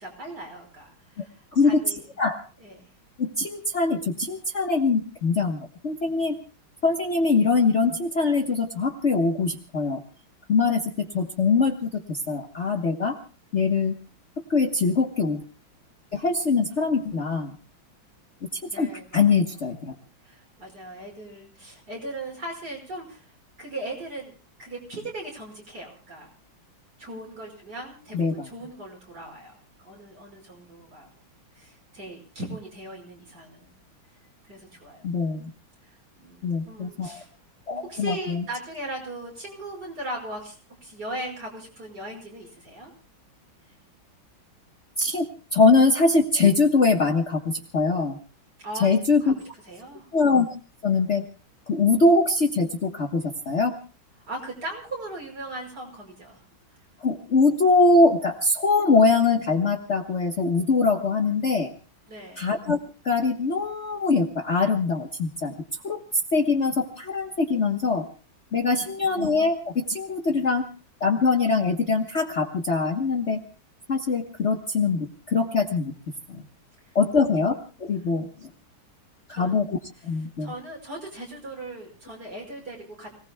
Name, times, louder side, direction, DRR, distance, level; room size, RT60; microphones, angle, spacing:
voice 1, 0.0-1.3 1.6-2.0 2.6-2.9 18.7-19.2 20.2-23.3 23.6-24.3 24.6-26.3 27.0-31.1 31.6-33.7 34.4-35.1 35.9-37.3 37.7-40.6 40.8-42.9 48.6-49.3 49.7-50.1 54.3-56.4 62.1-62.5 68.8-69.1 79.3-79.5 80.4-83.1, right 1 dB, 50° right, 0 dB, 6.4 m, -38 dB
voice 2, 1.5-1.8 2.2-2.4 3.2-6.4 6.8-10.0 10.5-13.2 13.5-13.9 14.5-15.4 16.1-17.5 18.7-19.9 28.1-28.5 35.0-35.5 36.4-37.2 37.7-38.4 45.0-48.2 48.8-49.3 50.1-50.4 50.8-51.2 51.7-53.7 57.0-61.7 62.4-62.8 63.0-65.5 65.8-66.0 66.3-68.0 68.5-70.6 71.0-73.4 73.9-75.9 76.3-76.4 76.9-78.5 79.3-79.7 80.0-80.5, left 4 dB, 40° left, 3 dB, 1.4 m, -23 dB
29.5 x 19.0 x 2.3 m, 0.37 s
omnidirectional pair, 2.2 m